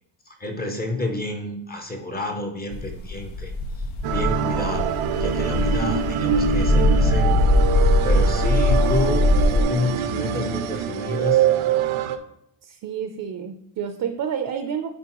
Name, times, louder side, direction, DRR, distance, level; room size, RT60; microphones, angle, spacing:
voice 1, 0.3-3.5 3.8-4.9 5.2-11.5, left 2 dB, 20° left, 4 dB, 0.5 m, -30 dB
sound 1, 2.7-9.6, left 2 dB, 90° left, 0.9 m, -21 dB
sound 2, 4.0-12.2, right 8 dB, 85° right, 0.7 m, -24 dB
voice 2, 12.6-14.9, right 8 dB, 45° right, 7 dB, 0.5 m, -29 dB
9.7 x 4.5 x 2.9 m, 0.75 s
cardioid pair, 175°, 48 cm